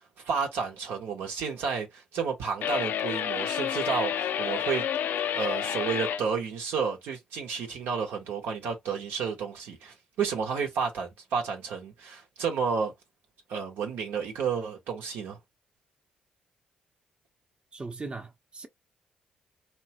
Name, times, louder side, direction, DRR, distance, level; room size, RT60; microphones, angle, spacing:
voice 1, 0.2-4.8 5.3-12.9 13.5-15.4, right 6 dB, 80° right, 0.9 m, -31 dB
sound 1, 2.6-6.2, left 9 dB, 65° left, 0.3 m, -29 dB
voice 2, 17.7-18.7, right 3 dB, 30° right, 0.7 m, -39 dB
3.0 x 2.2 x 2.9 m
hypercardioid pair, 50°, 3 cm